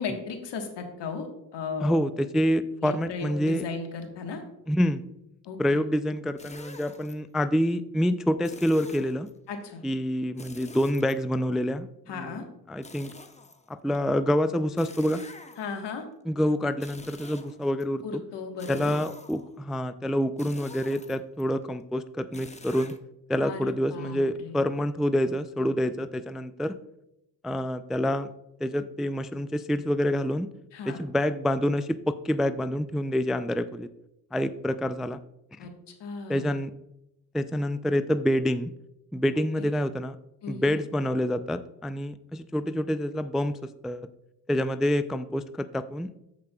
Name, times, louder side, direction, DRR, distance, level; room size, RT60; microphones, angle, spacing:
voice 1, 0.0-2.0 2.8-4.4 5.4-5.8 9.5-9.8 12.1-12.4 15.6-16.0 18.0-18.9 23.4-24.6 30.7-31.0 35.6-35.7 36.0-36.5 39.6-39.7 40.4-40.8, left 5 dB, 70° left, 4 dB, 1.5 m, -36 dB
voice 2, 1.8-3.6 4.7-5.0 5.6-9.3 9.8-11.9 12.2-12.4 12.7-13.1 13.7-15.2 16.3-18.0 18.7-22.9 23.3-26.8 27.4-28.3 28.6-30.5 30.9-33.9 34.3-35.2 35.6-35.7 36.3-36.7 37.3-38.7 39.1-40.2 40.5-43.6 43.8-44.1 44.5-46.1, equal, ahead, 12 dB, 0.3 m, -27 dB
sound 1, 6.4-7.1 8.4-9.3 10.4-11.6 12.8-14.0 14.8-15.9 16.7-17.8 18.6-19.6 20.4-21.4 22.3-23.0, left 3 dB, 15° left, 0.9 m, -47 dB
14.5 x 5.0 x 2.3 m, 0.86 s
supercardioid pair, 50°, 44 cm